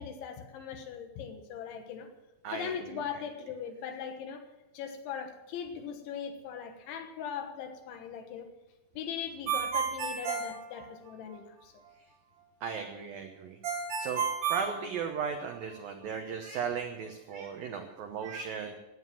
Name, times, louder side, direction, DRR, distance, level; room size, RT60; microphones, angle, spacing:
voice 1, 0.0-2.1 2.5-4.5 4.7-8.5 9.0-11.7, left 7 dB, 75° left, 6 dB, 3.6 m, -40 dB
Ringtone, 9.5-11.4 13.6-15.5, right 6 dB, 60° right, 3.0 m, -32 dB
voice 2, 12.6-13.6 14.0-14.2 14.5-18.7, right 6 dB, 85° right, 5 dB, 2.0 m, -36 dB
16.0 x 9.5 x 7.6 m, 1.0 s
omnidirectional pair, 5.7 m